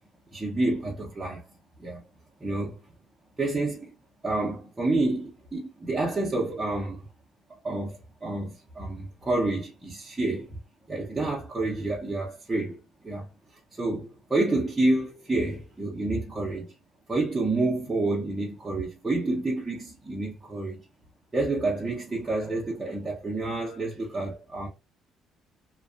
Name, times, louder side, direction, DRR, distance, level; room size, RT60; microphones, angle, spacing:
voice 1, 0.3-1.4 1.8-2.0 2.4-2.8 3.4-3.9 4.2-7.1 7.6-10.6 10.9-13.3 13.8-16.7 17.1-20.8 21.3-24.7, right 2 dB, 10° right, 0.5 m, -29 dB
2.4 x 2.2 x 2.3 m
cardioid pair, 155°, 0 cm